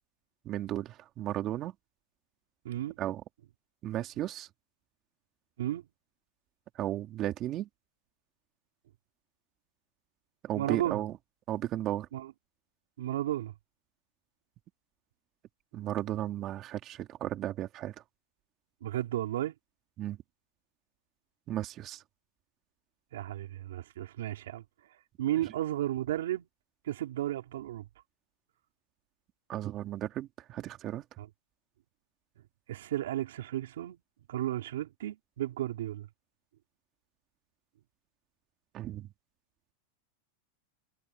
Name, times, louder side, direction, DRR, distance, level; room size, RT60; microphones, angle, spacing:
voice 1, 0.4-1.7 3.0-3.2 3.8-4.5 6.7-7.7 10.4-11.1 11.5-12.1 15.7-17.9 20.0-20.2 21.5-22.0 29.5-31.0 38.7-39.1, right 13 dB, 30° right, 3.0 m, -34 dB
voice 2, 2.6-3.0 5.6-5.8 10.6-11.0 12.1-12.3 13.0-13.5 18.8-19.5 23.1-24.6 25.2-26.5 26.8-27.9 31.2-31.3 32.7-34.0 34.3-36.1, right 13 dB, 85° right, 4.3 m, -33 dB
supercardioid pair, 150°, 0 cm